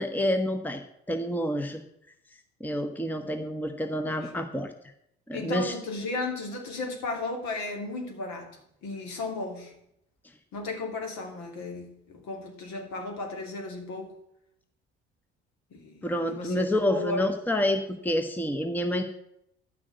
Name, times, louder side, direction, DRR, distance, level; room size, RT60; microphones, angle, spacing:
voice 1, 0.0-1.8 2.6-4.7 5.3-5.7 16.0-19.0, left 1 dB, 5° left, 6 dB, 1.1 m, -28 dB
voice 2, 5.3-8.6 8.8-9.7 10.5-14.1 15.7-17.3, left 2 dB, 60° left, 2 dB, 2.9 m, -35 dB
10.5 x 6.2 x 8.0 m, 0.75 s
figure-of-eight pair, 55°, 33 cm